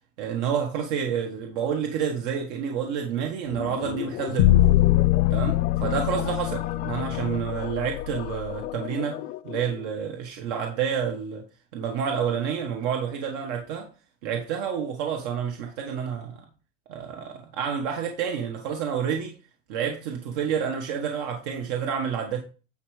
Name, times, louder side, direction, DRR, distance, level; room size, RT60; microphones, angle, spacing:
voice 1, 0.2-4.7 5.3-11.4 11.7-13.9 14.2-16.4 16.9-19.3 19.7-22.4, right 7 dB, 85° right, 1.4 m, -29 dB
sound 1, 3.5-9.9, left 15 dB, 45° left, 0.4 m, -36 dB
sound 2, 4.4-8.6, left 14 dB, 80° left, 0.7 m, -23 dB
9.8 x 4.4 x 4.9 m
cardioid pair, 175°, 21 cm